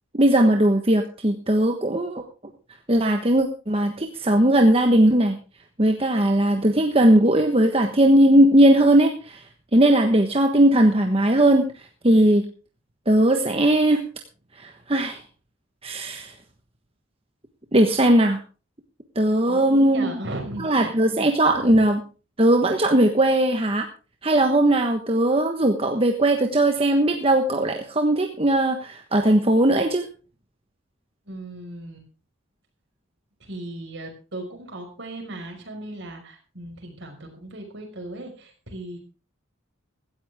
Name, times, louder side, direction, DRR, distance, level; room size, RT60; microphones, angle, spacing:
voice 1, 0.1-2.2 2.9-5.3 5.8-9.4 9.7-12.4 13.1-14.0 14.6-15.2 15.8-16.3 17.7-18.4 19.1-20.1 20.6-22.0 22.4-23.9 24.2-30.0, right 1 dB, 30° right, 4 dB, 1.2 m, -19 dB
voice 2, 19.5-21.0 21.6-21.8 31.3-32.1 33.4-39.0, right 1 dB, 60° right, 4 dB, 5.4 m, -37 dB
16.5 x 13.0 x 3.6 m, 0.35 s
head